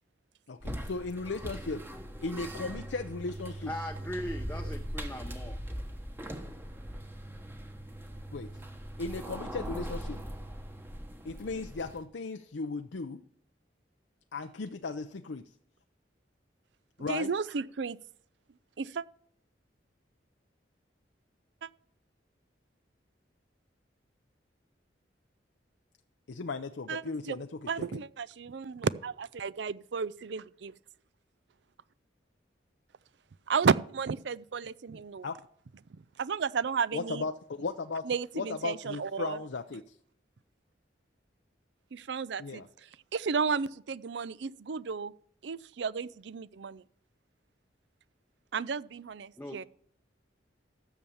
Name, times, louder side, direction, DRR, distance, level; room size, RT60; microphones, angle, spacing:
voice 1, 0.5-1.8 2.2-3.7 8.3-8.5 9.0-10.2 11.2-13.2 14.3-15.4 17.0-17.3 26.3-28.0 35.2-35.4 36.9-38.0 38.3-40.0 42.4-42.7, left 3 dB, 75° left, 0.6 m, -36 dB
sound 1, 0.6-12.0, equal, 10° right, 1.1 m, -40 dB
voice 2, 3.7-5.6 49.4-49.7, left 1 dB, 10° left, 0.7 m, -39 dB
voice 3, 17.0-18.0 18.8-19.0 21.6-21.7 26.9-27.4 27.7-30.7 33.5-35.3 36.2-37.3 38.0-39.4 41.9-42.6 43.1-45.1 45.4-46.8 48.5-49.7, right 5 dB, 70° right, 0.5 m, -33 dB
13.5 x 7.2 x 7.0 m
head